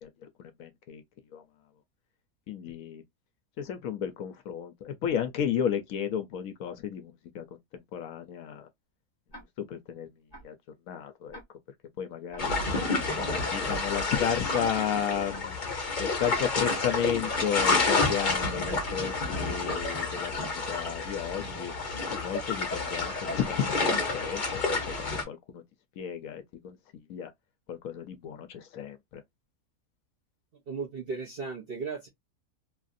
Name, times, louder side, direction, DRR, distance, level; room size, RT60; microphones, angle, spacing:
voice 1, 0.0-1.0 1.3-1.4 2.5-3.0 3.6-7.5 7.9-8.7 9.7-10.1 10.4-10.5 10.9-11.4 12.0-12.5 13.5-15.6 16.0-21.7 22.1-25.6 26.0-26.8 27.1-27.3 27.7-29.2, left 8 dB, 70° left, 0.9 m, -33 dB
Tick-tock, 9.3-9.4 10.3-10.4 11.3-11.4 12.3-12.4 13.3-13.4 14.3-14.4 15.3-15.4 16.3-16.4 17.3-17.4 18.3-18.4 19.3-19.4 20.3-20.4, right 1 dB, 15° left, 1.2 m, -46 dB
sound 1, 12.4-25.2, left 3 dB, 40° left, 0.9 m, -29 dB
voice 2, 30.7-32.1, right 4 dB, 60° right, 0.6 m, -35 dB
3.0 x 2.4 x 2.5 m
omnidirectional pair, 1.7 m